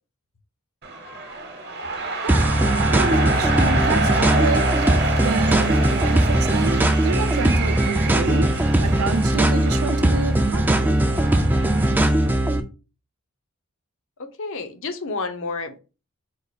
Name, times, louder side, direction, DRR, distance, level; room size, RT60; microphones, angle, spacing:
sound 1, 0.8-12.4, right 3 dB, 50° right, 0.9 m, -28 dB
voice 1, 2.2-2.6 2.9-4.6 5.2-8.5 8.8-11.0, right 5 dB, 70° right, 0.5 m, -29 dB
sound 2, 2.3-12.6, right 1 dB, 10° right, 0.3 m, -19 dB
voice 2, 14.2-15.8, left 3 dB, 65° left, 0.7 m, -30 dB
4.6 x 2.3 x 4.0 m
head